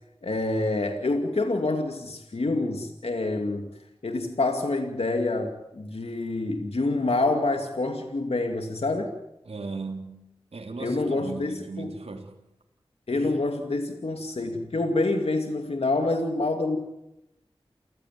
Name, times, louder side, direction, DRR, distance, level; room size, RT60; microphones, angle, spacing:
voice 1, 0.2-3.7 4.0-9.1 10.8-11.9 13.1-16.8, left 2 dB, 75° left, 4 dB, 2.5 m, -27 dB
voice 2, 9.4-10.1 10.5-12.3 13.2-13.4, right 3 dB, 85° right, 1 dB, 3.5 m, -37 dB
29.5 x 15.5 x 9.5 m, 0.88 s
wide cardioid pair, 45°, 10 cm